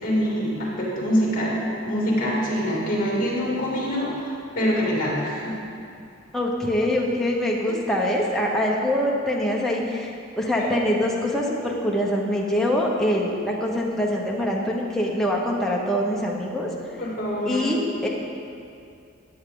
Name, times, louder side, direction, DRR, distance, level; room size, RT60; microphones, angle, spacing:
voice 1, 0.0-1.6 1.8-5.6 10.6-10.7 17.0-17.7, equal, 40° left, -5 dB, 2.8 m, -25 dB
voice 2, 6.3-16.9 17.5-18.1, left 1 dB, ahead, -3 dB, 1.1 m, -24 dB
13.0 x 9.1 x 3.9 m, 2.5 s
head